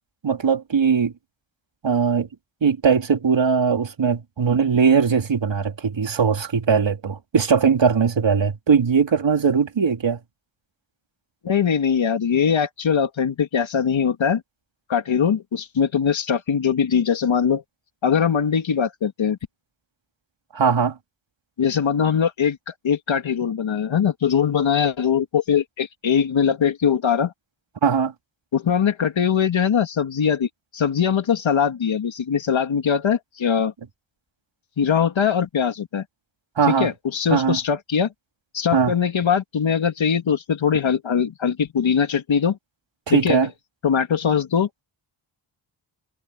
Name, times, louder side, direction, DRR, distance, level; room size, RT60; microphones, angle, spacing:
voice 1, 0.2-1.1 1.8-2.3 2.6-10.2 20.5-21.0 27.8-28.1 36.6-36.9 37.3-37.6 38.7-38.9 43.1-43.5, right 6 dB, 65° right, 3.7 m, -20 dB
voice 2, 11.4-14.4 14.9-17.6 18.0-19.4 21.6-27.3 28.5-33.7 34.8-36.0 36.7-38.1 38.5-42.6 43.1-43.4 43.8-44.7, left 7 dB, 70° left, 2.5 m, -21 dB
cardioid pair, 80°, 49 cm